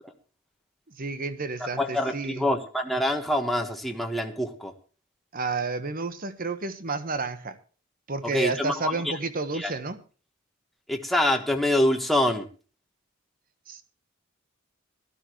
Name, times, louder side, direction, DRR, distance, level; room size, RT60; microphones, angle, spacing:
voice 1, 0.9-2.5 5.3-7.6 8.1-10.0 13.7-13.8, right 3 dB, 45° right, 11 dB, 1.2 m, -31 dB
voice 2, 1.8-4.7 8.2-8.9 9.5-9.7 10.9-12.5, left 1 dB, ahead, 3 dB, 1.4 m, -25 dB
17.5 x 13.0 x 3.1 m, 0.37 s
head